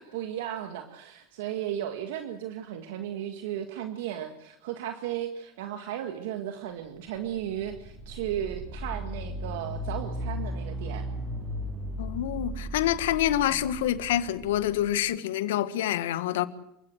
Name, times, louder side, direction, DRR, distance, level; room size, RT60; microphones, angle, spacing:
voice 1, 0.0-11.1 13.5-13.6, right 10 dB, 75° right, 1.8 m, -35 dB
sound 1, 7.1-15.0, equal, 30° right, 7.4 m, -36 dB
voice 2, 12.0-16.5, left 12 dB, 80° left, 1.5 m, -27 dB
28.5 x 16.0 x 7.8 m
hypercardioid pair, 100°, 0 cm